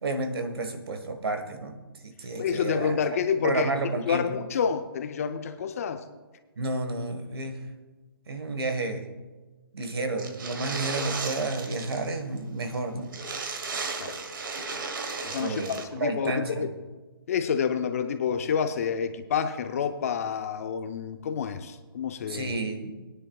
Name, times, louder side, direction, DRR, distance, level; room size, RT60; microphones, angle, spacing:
voice 1, 0.0-1.8 2.0-4.3 6.6-7.6 8.3-9.1 9.7-13.1 15.4-16.7 22.3-22.9, right 2 dB, 75° right, 7 dB, 1.6 m, -31 dB
voice 2, 2.4-3.7 4.1-6.0 14.0-14.2 15.2-16.7 17.3-22.5, left 7 dB, 35° left, 9 dB, 0.6 m, -28 dB
sound 1, 10.2-12.1 12.4-12.5 12.7-12.8 13.1-15.8, right 4 dB, 55° right, 1.3 m, -35 dB
21.0 x 9.9 x 2.4 m, 1.3 s
hypercardioid pair, 160°, 13 cm